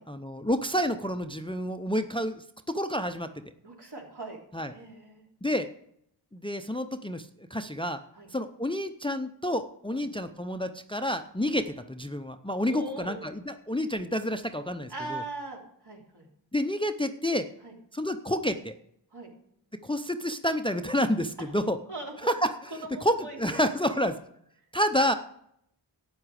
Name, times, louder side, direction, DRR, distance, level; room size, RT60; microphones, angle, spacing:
voice 1, 0.1-2.4 2.7-3.3 4.5-4.7 5.4-5.7 6.3-8.0 8.3-15.2 16.5-17.5 17.9-18.7 19.8-21.8 22.2-22.5 23.0-24.2 24.7-25.1, equal, 10° left, 8 dB, 0.6 m, -29 dB
voice 2, 3.6-4.4 4.7-5.3 8.1-8.3 9.9-10.0 12.7-13.2 14.9-16.3 17.6-17.7 19.1-19.3 21.9-22.1 22.7-24.1, right 2 dB, 65° right, -1 dB, 3.4 m, -40 dB
12.5 x 8.8 x 4.8 m, 0.71 s
wide cardioid pair, 65°, 43 cm